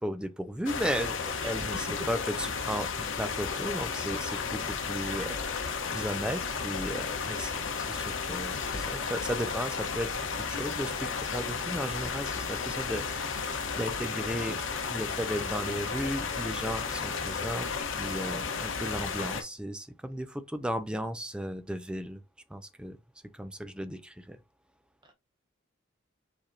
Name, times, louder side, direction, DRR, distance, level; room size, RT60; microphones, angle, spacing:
voice 1, 0.0-14.6 14.9-22.2 22.5-23.0 23.3-24.4, equal, 5° right, 0.3 m, -35 dB
sound 1, 0.7-19.4, left 5 dB, 70° left, 0.9 m, -33 dB
voice 2, 1.4-1.9 25.0-25.1, right 1 dB, 20° right, 0.8 m, -42 dB
4.8 x 4.2 x 2.6 m
head